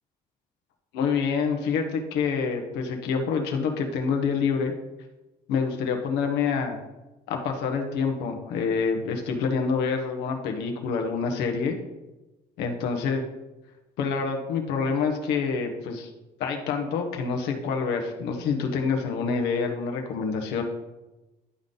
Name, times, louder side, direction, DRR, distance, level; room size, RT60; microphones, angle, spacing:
voice 1, 0.9-4.7 5.5-6.8 7.3-11.8 12.6-13.2 14.0-16.1 16.4-20.6, left 5 dB, 85° left, 3 dB, 1.0 m, -27 dB
11.0 x 3.9 x 3.8 m, 1.1 s
cardioid pair, 110°, 17 cm